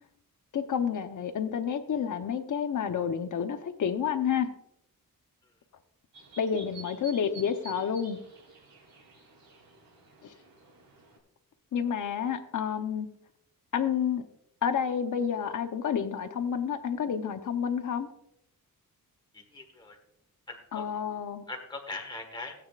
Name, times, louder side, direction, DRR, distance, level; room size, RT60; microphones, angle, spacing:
voice 1, 0.5-4.5 6.4-8.2 10.2-10.3 11.7-13.1 13.7-14.2 14.6-18.1 20.7-21.4, left 7 dB, 60° left, 8 dB, 0.9 m, -29 dB
sound 1, 6.1-11.2, right 5 dB, 85° right, 3.3 m, -51 dB
voice 2, 19.3-20.0 20.5-20.8 21.5-22.5, left 3 dB, 15° left, 1 dB, 1.5 m, -40 dB
17.0 x 8.7 x 2.4 m, 0.79 s
wide cardioid pair, 175°, 35 cm